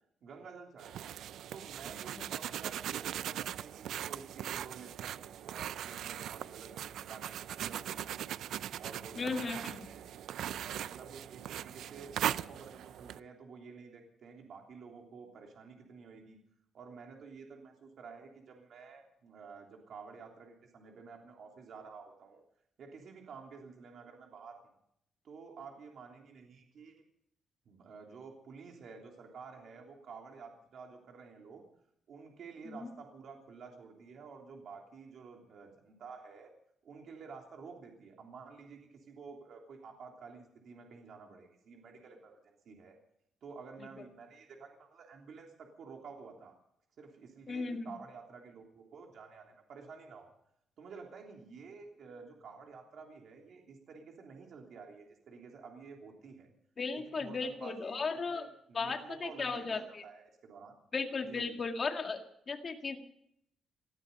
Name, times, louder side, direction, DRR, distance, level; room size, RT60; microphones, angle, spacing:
voice 1, 0.2-1.0 1.5-8.3 8.8-10.1 10.6-16.4 16.7-22.4 22.8-24.6 25.2-26.9 27.6-31.6 32.1-36.5 36.8-42.4 42.6-43.0 43.4-46.5 47.0-50.3 50.8-56.5 56.9-60.8 61.2-61.6, right 5 dB, 55° right, 1 dB, 3.2 m, -51 dB
sound 1, 0.8-13.2, right 11 dB, 75° right, 0.5 m, -40 dB
voice 2, 9.2-9.8 32.7-32.9 47.5-47.9 56.8-58.5 58.7-60.0 60.9-62.2 62.5-63.0, left 4 dB, 35° left, 4 dB, 2.0 m, -36 dB
19.5 x 14.0 x 5.4 m, 0.73 s
cardioid pair, 135°, 0 cm